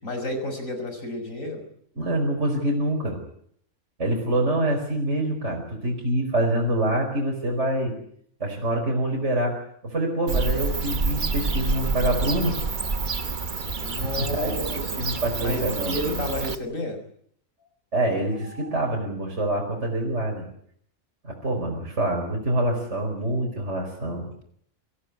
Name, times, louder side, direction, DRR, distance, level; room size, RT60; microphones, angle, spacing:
voice 1, 0.0-1.6 13.8-14.9 15.4-17.0, left 1 dB, 70° left, 6 dB, 6.1 m, -31 dB
voice 2, 2.0-3.2 4.0-7.9 8.4-12.6 14.2-16.2 17.9-20.4 21.2-24.3, right 1 dB, 60° right, 0 dB, 5.3 m, -26 dB
Bird / Cricket, 10.3-16.6, right 4 dB, 40° right, 1.2 m, -28 dB
26.5 x 16.0 x 9.7 m, 0.68 s
omnidirectional pair, 1.4 m